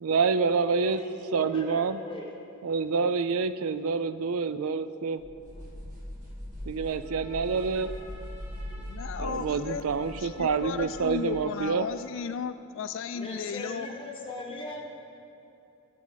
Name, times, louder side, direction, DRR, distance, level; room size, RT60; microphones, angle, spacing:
voice 1, 0.0-1.0 1.3-2.0 2.6-5.2 6.7-7.9 9.2-11.9, right 5 dB, 80° right, 13 dB, 0.4 m, -27 dB
voice 2, 0.8-2.3 9.2-9.7 13.1-14.8, left 2 dB, 25° left, -1 dB, 1.4 m, -39 dB
sound 1, 5.2-11.2, equal, 35° right, 2.6 m, -41 dB
Trumpet, 7.0-12.3, equal, 10° right, 2.7 m, -52 dB
voice 3, 8.8-9.9 10.2-13.9, left 6 dB, 60° left, 12 dB, 0.3 m, -35 dB
20.5 x 7.4 x 4.0 m, 2.8 s
head